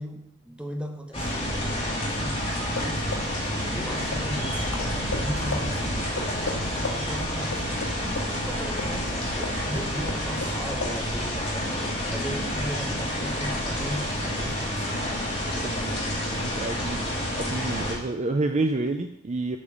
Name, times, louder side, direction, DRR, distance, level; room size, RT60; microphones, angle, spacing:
voice 1, 0.0-2.5 2.8-3.3 3.7-7.7 8.0-14.9, equal, 5° right, 3 dB, 1.0 m, -37 dB
sound 1, 1.1-18.0, equal, 25° left, 2.7 m, -29 dB
sound 2, 2.8-9.1 9.4-10.6 10.8-11.0, left 2 dB, 90° left, 1.8 m, -34 dB
voice 2, 15.6-17.0 17.4-19.6, right 2 dB, 30° right, 6 dB, 0.5 m, -29 dB
8.5 x 5.4 x 6.8 m, 0.75 s
head